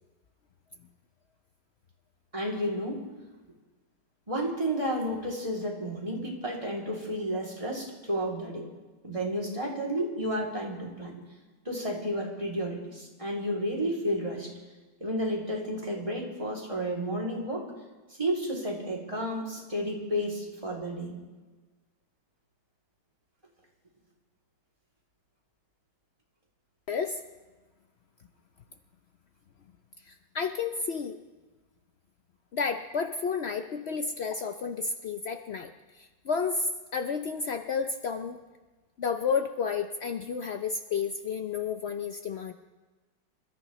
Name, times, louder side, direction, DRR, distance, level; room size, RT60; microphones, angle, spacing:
voice 1, 2.3-3.0 4.3-8.6 9.0-11.1 11.6-14.5 15.0-17.6 18.2-21.2, equal, 20° right, -3 dB, 2.8 m, -31 dB
voice 2, 26.9-27.2 30.0-31.2 32.5-38.4 39.0-42.5, left 5 dB, 80° left, 6 dB, 0.5 m, -31 dB
27.0 x 14.0 x 3.1 m, 1.3 s
omnidirectional pair, 1.9 m